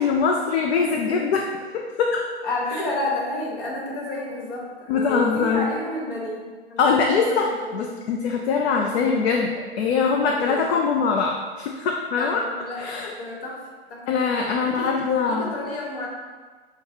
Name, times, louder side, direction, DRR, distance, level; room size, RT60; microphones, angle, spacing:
voice 1, 0.0-1.4 1.7-2.2 2.7-2.8 4.9-5.7 6.8-12.4 12.8-13.1 14.1-15.5, left 5 dB, 70° left, 1 dB, 0.5 m, -22 dB
voice 2, 0.8-1.3 2.4-7.8 10.3-10.6 12.2-13.6 13.9-14.0 14.3-14.9 15.2-16.1, left 1 dB, 55° left, -2 dB, 1.3 m, -31 dB
6.3 x 2.3 x 2.8 m, 1.4 s
hypercardioid pair, 125°, 32 cm